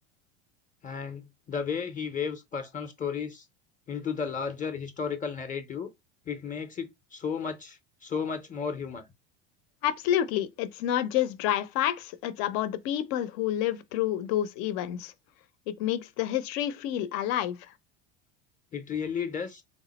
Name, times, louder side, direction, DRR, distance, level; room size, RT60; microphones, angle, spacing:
voice 1, 0.8-3.4 3.9-5.9 6.3-9.0 18.7-19.6, left 6 dB, 25° left, 0.6 m, -33 dB
voice 2, 9.8-15.1 15.8-17.6, left 11 dB, 65° left, 0.6 m, -29 dB
3.6 x 2.1 x 4.0 m
supercardioid pair, 105°, 32 cm